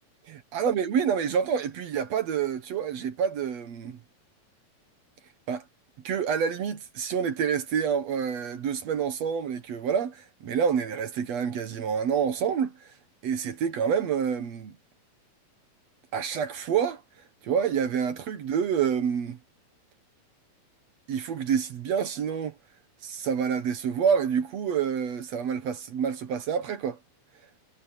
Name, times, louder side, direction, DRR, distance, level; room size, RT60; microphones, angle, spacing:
voice 1, 0.5-4.0 5.5-5.6 6.0-12.7 13.2-14.8 16.1-17.0 17.4-19.4 21.1-22.5 23.0-27.0, right 7 dB, 60° right, 2.1 m, -27 dB
omnidirectional pair, 4.0 m